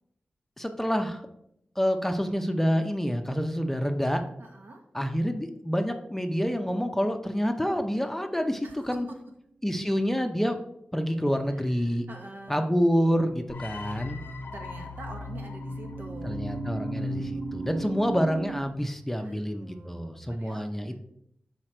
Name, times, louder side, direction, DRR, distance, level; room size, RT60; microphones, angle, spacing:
voice 1, 0.6-1.2 1.8-4.2 4.9-9.1 9.6-10.6 10.9-12.1 12.5-14.2 16.2-21.0, equal, 10° left, 6 dB, 0.6 m, -27 dB
voice 2, 4.4-4.8 8.6-9.0 11.5-12.7 14.5-16.4 19.2-21.0, right 2 dB, 75° right, 2 dB, 1.2 m, -46 dB
sound 1, 8.3-9.0 15.1-18.6, right 4 dB, 55° right, 0.4 m, -38 dB
sound 2, 13.5-18.6, left 3 dB, 70° left, 0.7 m, -38 dB
6.2 x 5.0 x 4.4 m, 0.75 s
wide cardioid pair, 110°, 3 cm